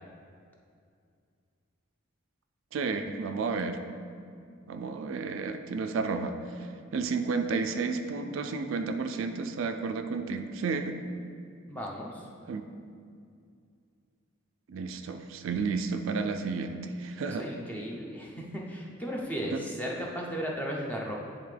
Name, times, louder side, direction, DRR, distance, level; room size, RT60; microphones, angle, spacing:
voice 1, 2.7-3.8 4.7-6.3 6.9-11.0 12.5-12.7 14.7-17.5 19.5-19.6, right 4 dB, 70° right, 7 dB, 0.4 m, -32 dB
voice 2, 11.7-12.3 17.3-21.1, equal, 10° left, -2 dB, 0.7 m, -35 dB
10.0 x 3.6 x 3.3 m, 2.3 s
head